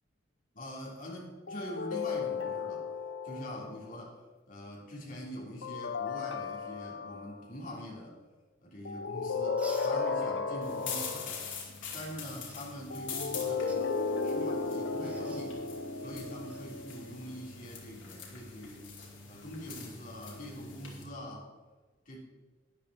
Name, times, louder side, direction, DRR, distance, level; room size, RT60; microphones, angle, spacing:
voice 1, 0.5-2.8 3.2-4.2 4.5-8.2 8.6-11.5 11.9-15.6 16.0-18.9 19.3-21.5 22.1-22.2, equal, 45° left, -2 dB, 3.0 m, -44 dB
sound 1, 1.5-3.9 5.6-7.5 8.8-11.6 12.9-17.4, left 4 dB, 70° left, 0.7 m, -35 dB
sound 2, 9.6-10.0 11.5-11.6 12.5-12.7 13.5-13.8 15.0-15.5 16.5-16.6 18.7-18.9, right 2 dB, 5° right, 1.2 m, -49 dB
sound 3, 10.6-21.0, left 6 dB, 90° left, 2.8 m, -44 dB
13.0 x 10.5 x 4.1 m, 1.3 s
head